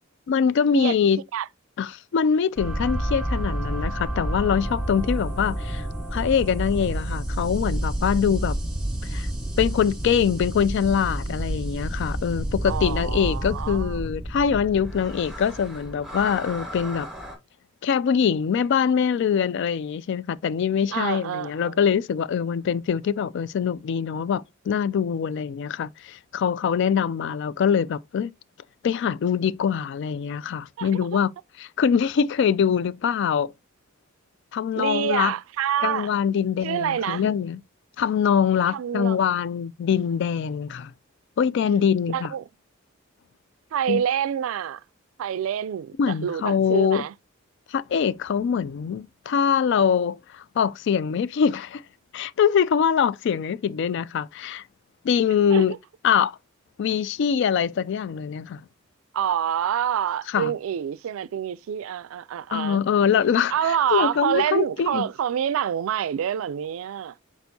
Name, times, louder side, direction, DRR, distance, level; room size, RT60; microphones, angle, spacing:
voice 1, 0.3-1.2 1.8-5.9 6.1-8.6 9.1-9.3 9.6-17.1 17.8-28.3 28.8-31.3 31.6-33.5 34.5-35.3 35.8-37.6 38.0-40.9 41.4-42.3 43.9-44.0 46.0-47.0 47.7-51.8 52.1-54.6 55.0-55.7 56.0-56.4 56.8-58.6 60.3-60.5 62.5-65.0, left 7 dB, 60° left, 0.3 m, -23 dB
sound 1, 2.6-17.3, right 1 dB, ahead, 1.4 m, -30 dB
voice 2, 12.7-14.0 20.9-21.8 30.8-31.1 34.7-36.1 36.6-37.2 38.7-39.2 42.1-42.5 43.7-44.8 45.2-47.1 55.5-55.6 59.1-62.8 63.5-67.1, right 9 dB, 85° right, 0.3 m, -27 dB
4.5 x 4.4 x 2.7 m
head